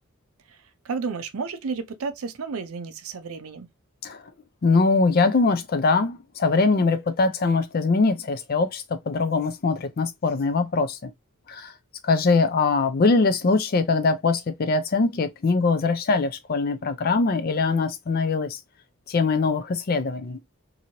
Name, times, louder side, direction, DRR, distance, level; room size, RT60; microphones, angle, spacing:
voice 1, 0.8-3.7, right 5 dB, 80° right, 0.5 m, -32 dB
voice 2, 4.6-11.1 11.5-11.7 12.0-18.6 19.1-20.4, left 3 dB, 45° left, 0.4 m, -22 dB
2.9 x 2.7 x 2.7 m
head